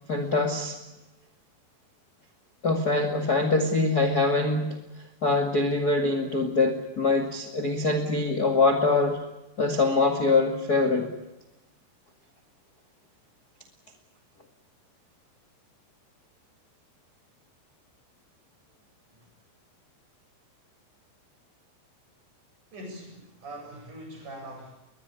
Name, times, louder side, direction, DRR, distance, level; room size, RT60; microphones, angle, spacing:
voice 1, 0.1-0.8 2.6-4.8 5.2-9.2 9.6-11.1, left 3 dB, 30° left, 6 dB, 1.8 m, -24 dB
voice 2, 22.7-24.7, right 1 dB, 45° right, 3 dB, 9.2 m, -42 dB
22.5 x 21.5 x 8.3 m, 0.97 s
omnidirectional pair, 5.1 m